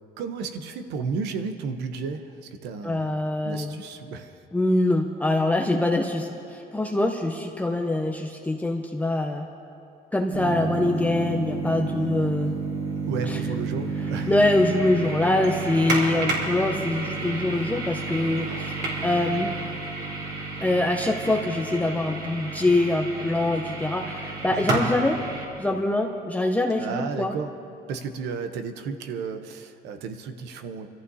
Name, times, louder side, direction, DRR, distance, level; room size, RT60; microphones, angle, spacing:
voice 1, 0.2-4.4 13.1-14.3 24.5-24.7 26.8-27.5 27.9-30.9, right 5 dB, 85° right, 7 dB, 0.9 m, -33 dB
voice 2, 2.8-3.7 4.5-9.5 10.1-12.5 13.3-13.4 14.3-19.5 20.6-25.2 25.6-27.3, left 2 dB, 10° left, 2 dB, 0.7 m, -24 dB
sound 1, 10.3-25.4, right 3 dB, 70° right, 3.9 m, -31 dB
26.0 x 14.0 x 2.8 m, 2.6 s
cardioid pair, 110°, 17 cm